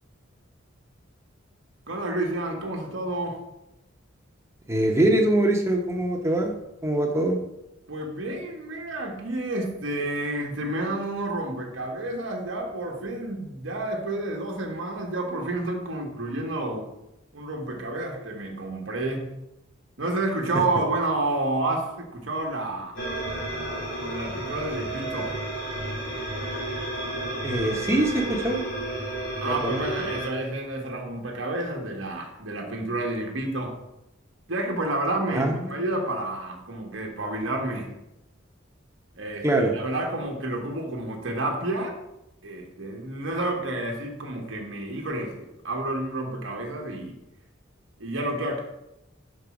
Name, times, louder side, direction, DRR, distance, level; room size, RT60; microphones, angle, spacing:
voice 1, 1.9-3.4 7.9-16.9 17.3-19.3 20.0-23.0 24.0-25.3 29.4-33.8 34.5-37.9 39.2-41.9 42.4-47.2 48.0-48.6, right 2 dB, 70° right, 1 dB, 1.1 m, -30 dB
voice 2, 4.7-6.5 6.8-7.4 27.4-28.6 29.4-29.8 35.3-35.8 39.4-39.7, right 1 dB, 15° right, 0 dB, 0.8 m, -23 dB
sound 1, 23.0-30.3, right 1 dB, 80° left, 2.4 m, -32 dB
5.2 x 4.1 x 5.8 m, 0.90 s
head